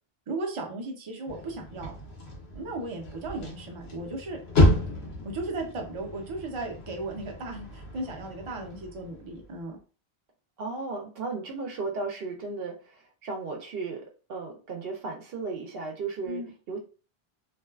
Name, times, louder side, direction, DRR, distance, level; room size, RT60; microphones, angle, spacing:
voice 1, 0.3-1.9 2.5-4.4 5.2-9.8 16.3-16.5, right 2 dB, 40° right, 1 dB, 0.5 m, -36 dB
sound 1, 1.3-9.6, left 1 dB, 80° left, 1.1 m, -30 dB
voice 2, 10.6-16.8, right 4 dB, 70° right, 2 dB, 0.8 m, -35 dB
2.6 x 2.2 x 2.2 m, 0.36 s
omnidirectional pair, 1.0 m